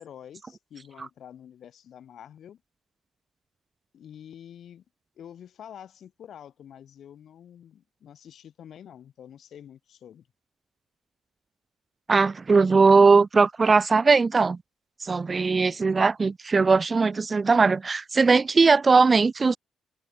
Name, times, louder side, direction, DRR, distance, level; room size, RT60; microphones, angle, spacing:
voice 1, 0.0-2.6 3.9-4.8 5.2-10.3, left 9 dB, 65° left, 7.2 m, -47 dB
voice 2, 12.1-14.6 15.0-19.6, right 4 dB, 30° right, 0.6 m, -19 dB
cardioid pair, 90°, 0 cm